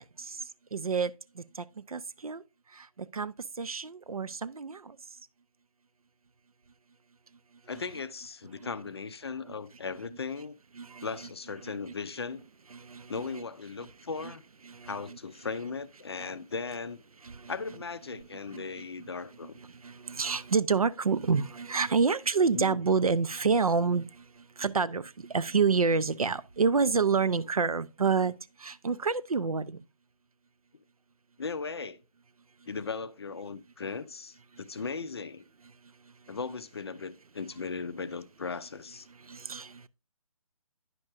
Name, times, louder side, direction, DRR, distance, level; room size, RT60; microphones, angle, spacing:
voice 1, 0.7-1.1 1.9-2.4 3.1-4.8 10.8-11.1 12.7-13.1 14.7-14.9 17.3-17.5 18.5-18.8 19.8-24.1 24.6-28.3 28.6-29.8 39.3-39.9, right 5 dB, 75° right, 0.5 m, -28 dB
voice 2, 7.7-10.6 11.0-12.4 13.1-14.4 14.8-17.0 17.5-19.5 22.5-22.8 31.4-32.0 32.7-35.4 36.3-39.1, left 4 dB, 45° left, 0.4 m, -37 dB
9.7 x 6.1 x 2.5 m
figure-of-eight pair, 145°, 19 cm